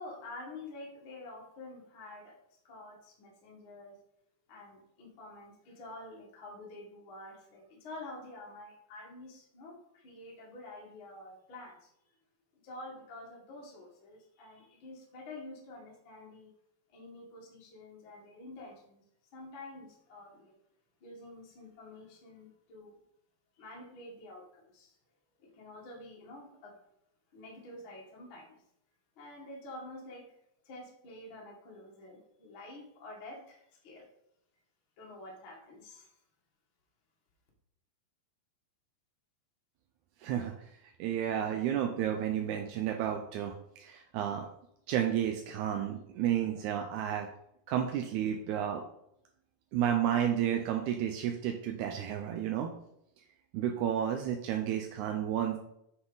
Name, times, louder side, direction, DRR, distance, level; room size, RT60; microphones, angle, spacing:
voice 1, 0.0-4.0 4.5-11.9 12.6-16.5 16.9-19.0 19.3-20.5 21.0-23.0 23.5-25.0 25.4-26.8 27.3-28.6 29.2-30.4 30.6-34.1 35.0-36.2, left 2 dB, 45° left, -2 dB, 2.0 m, -48 dB
voice 2, 40.2-40.5 40.8-43.5 43.8-44.5 44.9-47.3 47.7-48.8 49.7-52.7 53.5-55.6, right 10 dB, 80° right, 4 dB, 1.8 m, -31 dB
8.2 x 5.7 x 4.0 m, 0.75 s
omnidirectional pair, 4.0 m